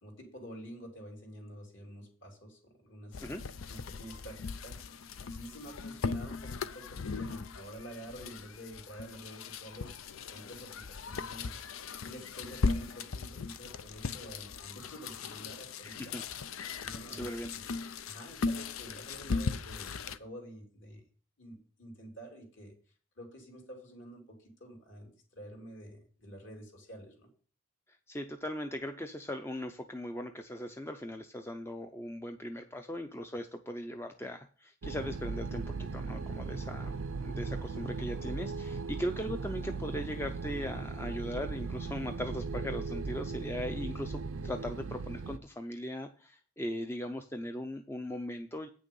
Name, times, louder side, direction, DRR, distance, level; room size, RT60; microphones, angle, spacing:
voice 1, 0.0-3.2 3.7-4.8 5.2-10.0 10.3-11.6 12.0-16.2 16.8-17.3 17.6-17.7 18.1-21.0 21.4-22.8 23.2-27.3, right 1 dB, 60° left, 1 dB, 3.4 m, -49 dB
sound 1, 3.1-20.2, left 4 dB, 80° left, 0.6 m, -38 dB
voice 2, 15.8-16.2 17.1-17.5 28.1-48.7, equal, 10° left, 6 dB, 0.5 m, -39 dB
sound 2, 34.8-45.4, right 4 dB, 80° right, 0.6 m, -38 dB
8.9 x 6.4 x 5.4 m, 0.41 s
head